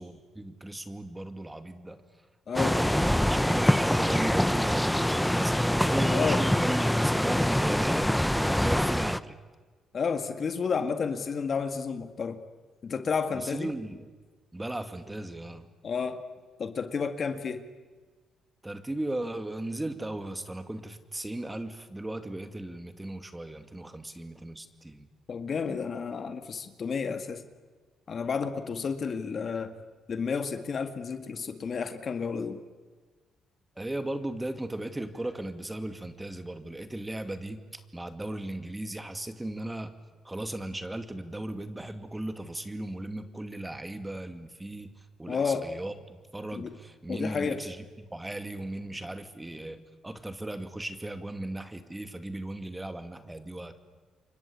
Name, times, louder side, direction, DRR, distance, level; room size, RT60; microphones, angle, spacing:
voice 1, 0.0-2.0 2.8-8.1 8.4-9.4 13.3-14.1 14.5-15.7 18.6-25.1 33.8-39.9 40.2-44.9 45.2-53.8, right 1 dB, 10° right, 9 dB, 2.3 m, -37 dB
voice 2, 2.5-3.0 6.0-6.4 9.9-12.4 12.8-13.7 15.8-16.2 16.6-17.6 25.3-27.4 28.1-29.7 30.1-32.6 45.3-45.7 46.6-46.7 47.1-47.6, left 5 dB, 50° left, 9 dB, 2.1 m, -31 dB
sound 1, 2.5-9.2, equal, 5° left, 0.8 m, -25 dB
29.0 x 24.5 x 8.6 m, 1.4 s
cardioid pair, 90°, 0 cm